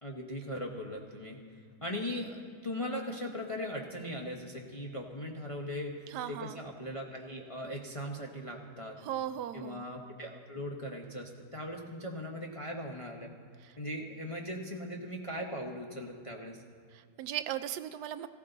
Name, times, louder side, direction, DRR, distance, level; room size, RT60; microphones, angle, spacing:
voice 1, 0.0-1.4 1.8-5.9 6.3-9.0 9.5-13.3 13.8-16.6, left 1 dB, 25° left, 0 dB, 0.9 m, -39 dB
voice 2, 6.1-6.6 9.0-9.9 13.6-13.7 16.9-18.3, right 11 dB, 85° right, 12 dB, 1.2 m, -37 dB
17.5 x 15.0 x 4.0 m, 2.2 s
omnidirectional pair, 1.7 m